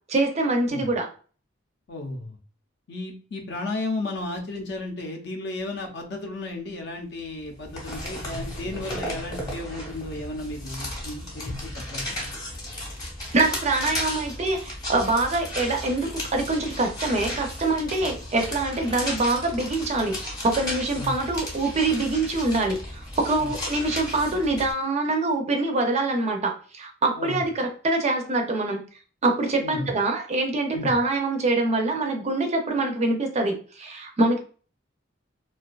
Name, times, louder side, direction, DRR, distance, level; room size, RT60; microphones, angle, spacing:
voice 1, 0.1-1.1 13.3-28.8 29.2-34.4, right 2 dB, 35° right, 3 dB, 0.4 m, -25 dB
voice 2, 1.9-2.4 2.9-12.2 21.0-21.1 23.4-23.5 27.2-27.4 29.6-29.9 30.7-30.9, left 2 dB, 60° left, 3 dB, 0.5 m, -34 dB
sound 1, 7.4-24.7, left 1 dB, 20° left, 0.8 m, -35 dB
2.5 x 2.2 x 2.2 m, 0.39 s
head